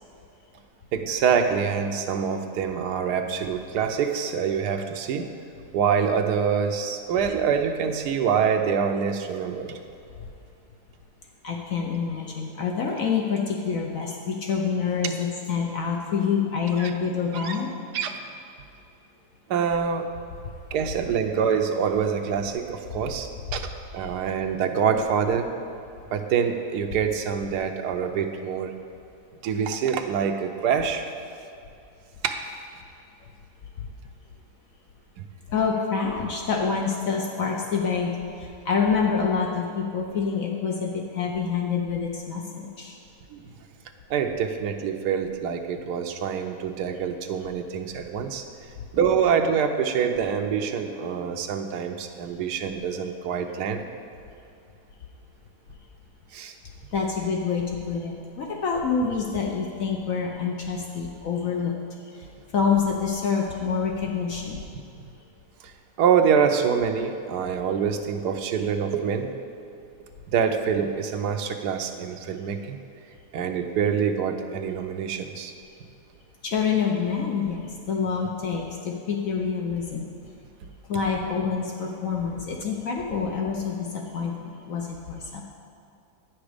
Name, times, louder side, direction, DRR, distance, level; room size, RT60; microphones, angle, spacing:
voice 1, 0.9-5.3 5.7-9.8 16.8-16.9 17.4-17.6 17.9-18.2 19.5-20.1 20.7-25.5 26.1-28.7 29.4-31.1 32.2-32.4 43.3-43.4 44.1-48.4 48.9-53.8 56.3-56.5 65.6-65.7 66.0-69.4 70.3-72.8 73.3-75.5, right 7 dB, 75° right, 5 dB, 1.2 m, -25 dB
voice 2, 11.4-17.7 24.0-24.1 33.8-33.9 35.5-43.0 56.9-61.8 62.1-62.3 62.5-64.6 76.4-80.1 80.9-85.4, left 6 dB, 65° left, 1 dB, 1.0 m, -27 dB
9.4 x 6.1 x 5.0 m, 2.6 s
omnidirectional pair, 1.8 m